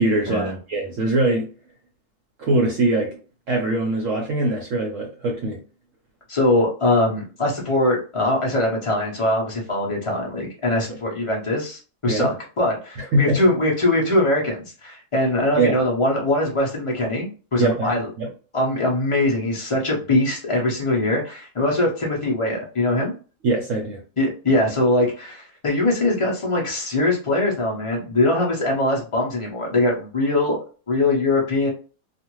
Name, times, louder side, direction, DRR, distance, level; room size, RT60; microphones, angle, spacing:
voice 1, 0.0-1.5 2.4-3.1 3.5-5.6 12.1-12.3 13.0-13.4 15.6-15.8 17.6-18.3 23.4-24.0, right 2 dB, 65° right, 0 dB, 0.9 m, -22 dB
voice 2, 6.3-18.1 18.5-23.1 24.2-30.6 30.9-31.7, left 1 dB, 40° left, -2 dB, 0.4 m, -22 dB
2.5 x 2.4 x 3.0 m, 0.37 s
omnidirectional pair, 1.7 m